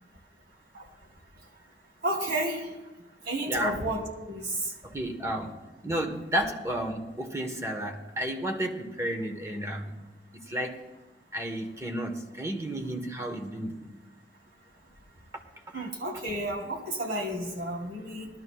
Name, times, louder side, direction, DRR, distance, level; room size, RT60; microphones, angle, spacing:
voice 1, 2.0-2.7 3.3-4.6 15.7-18.3, right 1 dB, 65° right, 0 dB, 2.8 m, -31 dB
voice 2, 4.8-5.6 5.8-9.9 10.5-10.8 11.3-13.9 15.7-15.8, right 1 dB, 15° right, 3 dB, 1.1 m, -32 dB
19.5 x 12.5 x 2.3 m, 1.1 s
head